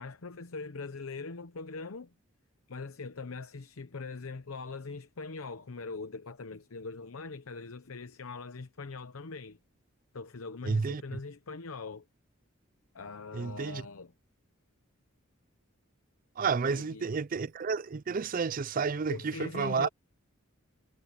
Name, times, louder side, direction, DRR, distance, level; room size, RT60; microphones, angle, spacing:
voice 1, 0.0-2.1 2.7-9.6 10.1-12.0 12.9-14.1 16.6-17.1 19.1-19.9, left 4 dB, 85° left, 0.8 m, -42 dB
voice 2, 10.6-11.0 13.3-13.8 16.4-19.9, right 5 dB, 40° right, 0.4 m, -31 dB
head